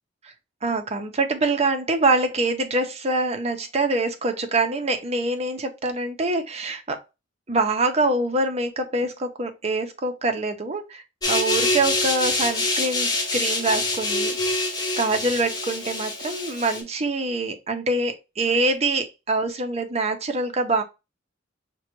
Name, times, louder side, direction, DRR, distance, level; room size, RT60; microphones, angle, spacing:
voice 1, 0.6-7.0 7.5-20.8, right 2 dB, 35° right, 0.7 m, -25 dB
sound 1, 11.2-16.8, left 2 dB, 20° left, 0.9 m, -25 dB
5.3 x 2.2 x 3.0 m
head